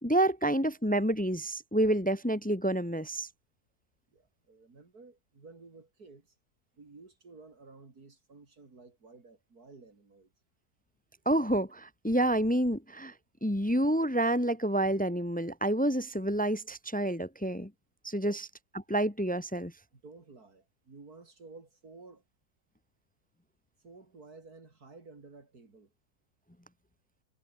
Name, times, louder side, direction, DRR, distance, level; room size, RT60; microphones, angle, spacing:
voice 1, 0.0-3.3 11.3-13.1 13.4-17.7 18.0-18.4 18.9-19.7, right 1 dB, 10° left, 0.5 m, -28 dB
voice 2, 4.1-6.4 6.8-10.3 18.2-18.4 19.9-22.2 23.8-25.9, right 3 dB, 70° right, 3.9 m, -53 dB
omnidirectional pair, 1.7 m